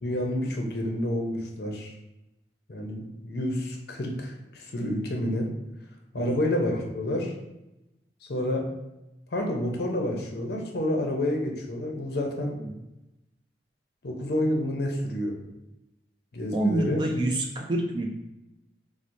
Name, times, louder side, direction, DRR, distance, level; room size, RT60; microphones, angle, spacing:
voice 1, 0.0-1.9 2.7-5.5 6.1-7.3 8.3-8.7 9.3-12.6 14.0-15.4 16.3-17.0, left 1 dB, 60° left, 1 dB, 0.6 m, -29 dB
voice 2, 16.5-18.1, right 1 dB, 25° right, 1 dB, 0.3 m, -26 dB
4.4 x 2.1 x 2.6 m, 0.94 s
head